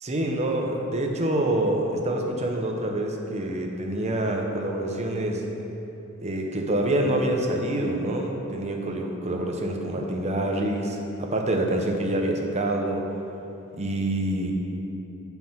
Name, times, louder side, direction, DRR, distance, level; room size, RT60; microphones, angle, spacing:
voice 1, 0.0-5.5 6.2-13.0 13.7-14.5, right 1 dB, 30° right, 1 dB, 0.7 m, -26 dB
7.6 x 4.5 x 5.6 m, 2.9 s
head